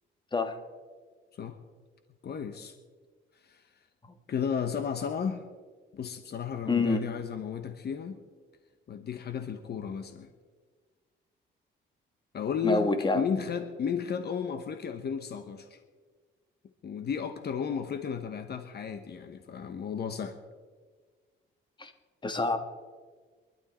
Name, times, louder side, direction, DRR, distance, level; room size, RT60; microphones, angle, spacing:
voice 1, 2.2-2.7 3.4-3.6 4.3-5.4 5.9-8.2 8.9-10.3 12.3-15.8 16.8-20.4, left 7 dB, 55° left, 8 dB, 1.1 m, -33 dB
voice 2, 6.7-7.1 12.6-13.2 21.8-21.9 22.2-22.6, left 3 dB, 25° left, 8 dB, 1.6 m, -27 dB
24.0 x 12.0 x 4.4 m, 1.5 s
cardioid pair, 90°, 20 cm